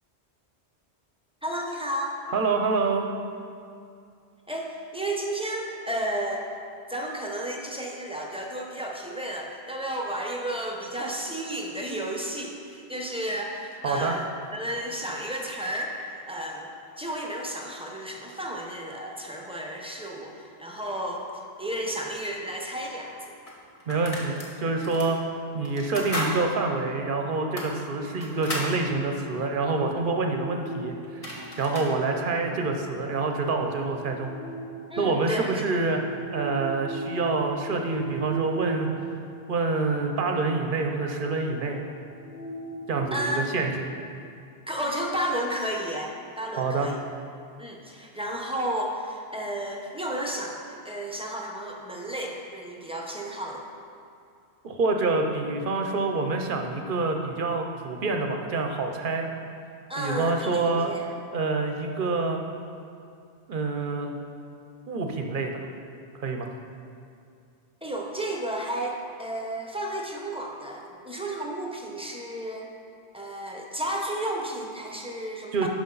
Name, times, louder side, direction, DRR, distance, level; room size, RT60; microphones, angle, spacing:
voice 1, 1.4-2.1 4.5-6.5 6.9-16.7 17.0-21.3 21.6-23.3 34.9-35.6 43.1-43.5 44.7-47.0 47.6-53.6 59.9-61.1 67.8-72.7 73.1-75.7, right 1 dB, 5° right, -1 dB, 0.7 m, -32 dB
voice 2, 2.3-3.1 13.8-14.1 23.9-25.2 25.5-31.3 31.6-34.3 35.0-36.0 36.3-38.9 39.5-41.8 42.9-43.8 46.6-46.9 54.6-59.3 60.0-60.9 61.3-62.4 63.5-64.1 64.9-65.7 66.2-66.5 75.5-75.7, right 3 dB, 55° right, 3 dB, 0.8 m, -27 dB
sound 1, 22.7-22.8 23.5-24.5 24.8-25.1 25.6-26.4 26.7-26.8 27.4-28.7 30.7-30.8 31.0-31.9, left 1 dB, 35° left, 1.2 m, -34 dB
sound 2, 29.5-35.3 35.8-43.9, right 3 dB, 65° left, 1.2 m, -39 dB
11.0 x 5.1 x 3.9 m, 2.5 s
omnidirectional pair, 1.1 m